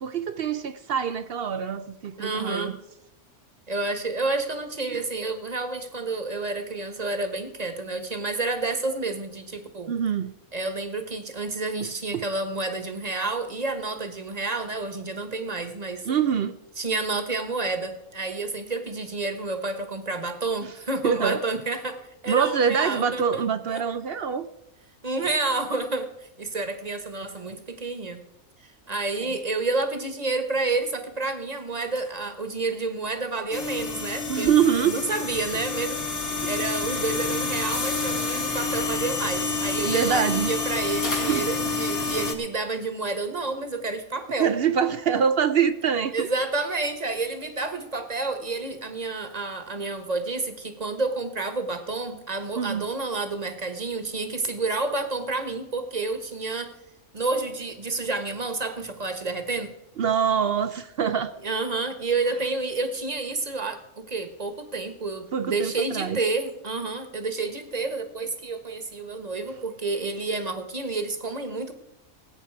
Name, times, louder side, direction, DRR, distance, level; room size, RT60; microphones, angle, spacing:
voice 1, 0.0-2.7 4.9-5.0 9.9-10.3 12.1-12.2 16.1-16.6 20.6-20.7 21.0-21.4 22.3-24.5 34.3-35.0 39.8-40.5 41.3-41.4 44.4-46.3 52.6-52.9 60.0-61.3 65.3-66.2, right 7 dB, 60° right, 13 dB, 0.6 m, -24 dB
voice 2, 2.2-2.8 3.7-9.9 10.5-16.1 16.8-22.0 22.2-23.8 25.0-28.2 28.6-44.5 46.1-56.7 57.1-59.7 61.4-71.7, right 3 dB, 30° right, 8 dB, 1.3 m, -29 dB
sound 1, 30.8-34.6 35.5-39.0 39.3-42.2, left 2 dB, 75° left, 3.6 m, -43 dB
sound 2, 33.5-42.3, left 4 dB, 40° left, 1.8 m, -28 dB
18.0 x 8.6 x 4.6 m, 0.89 s
omnidirectional pair, 1.5 m